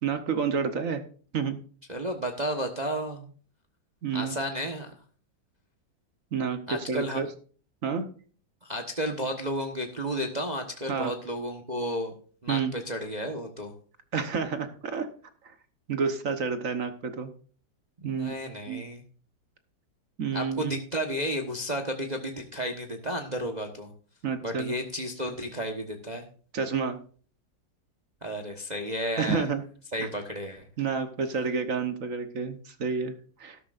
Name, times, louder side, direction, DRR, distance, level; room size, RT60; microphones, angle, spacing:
voice 1, 0.0-1.0 1.3-1.6 4.0-4.4 6.3-7.3 7.8-8.0 10.9-11.1 12.5-12.7 14.1-15.1 15.9-17.3 18.0-18.3 18.7-18.8 20.2-20.7 24.2-24.8 26.5-27.0 29.2-29.6 30.0-30.1 30.8-33.6, right 6 dB, 50° right, 8 dB, 1.3 m, -29 dB
voice 2, 1.9-3.3 4.1-4.9 6.7-7.2 8.6-12.1 12.4-13.7 18.0-19.0 20.3-23.9 24.4-26.2 28.2-29.4 29.9-30.7, equal, 25° right, 4 dB, 1.1 m, -32 dB
13.0 x 12.5 x 2.5 m, 0.41 s
omnidirectional pair, 2.2 m